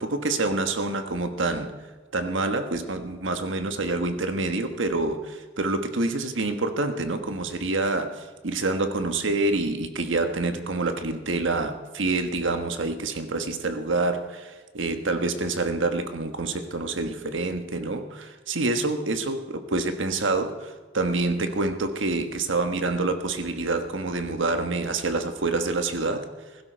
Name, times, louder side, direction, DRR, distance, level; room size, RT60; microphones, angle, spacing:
voice 1, 0.0-1.7 2.1-26.3, right 2 dB, 80° right, 7 dB, 1.4 m, -27 dB
16.5 x 15.5 x 4.6 m, 1.4 s
head